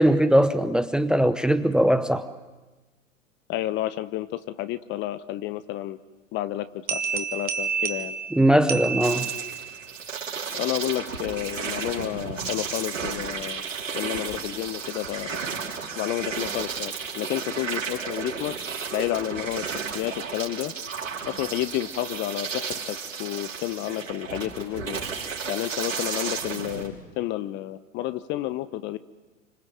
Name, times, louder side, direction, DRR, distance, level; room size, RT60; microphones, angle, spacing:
voice 1, 0.0-2.3 8.3-9.3, right 1 dB, ahead, 12 dB, 0.9 m, -20 dB
voice 2, 3.5-6.0 6.3-8.2 10.6-13.6 13.9-15.4 16.0-18.5 18.9-20.7 21.3-25.1 25.5-29.0, left 14 dB, 30° left, 14 dB, 0.9 m, -30 dB
sound 1, 6.9-9.8, right 6 dB, 25° right, 1.9 m, -30 dB
sound 2, 9.0-26.9, right 5 dB, 75° right, 4.8 m, -33 dB
29.0 x 26.0 x 7.8 m, 1.2 s
figure-of-eight pair, 95°, 39 cm